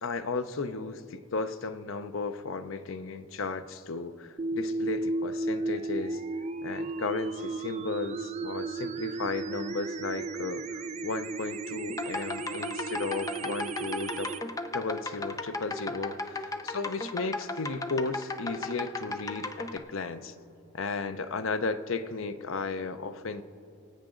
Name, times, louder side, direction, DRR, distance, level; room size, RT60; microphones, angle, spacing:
voice 1, 0.0-6.2 6.6-14.3 14.7-20.3 20.7-23.4, left 4 dB, 75° left, 11 dB, 0.6 m, -34 dB
sound 1, 4.4-14.4, right 2 dB, 35° right, 0.4 m, -34 dB
sound 2, 11.9-19.8, left 2 dB, 15° left, 0.5 m, -36 dB
24.0 x 8.5 x 3.8 m, 2.6 s
head